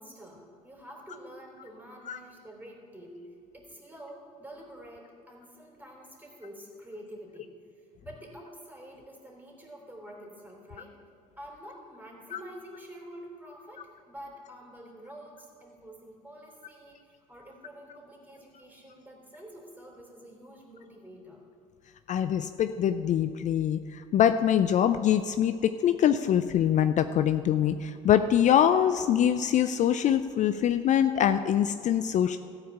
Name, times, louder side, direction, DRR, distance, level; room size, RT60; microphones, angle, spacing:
voice 1, 0.0-7.5 7.8-10.9 11.4-21.4, equal, 10° right, -1 dB, 3.4 m, -47 dB
voice 2, 22.1-32.4, left 9 dB, 50° left, 10 dB, 0.4 m, -24 dB
14.0 x 4.9 x 8.4 m, 2.4 s
supercardioid pair, 75°, 16 cm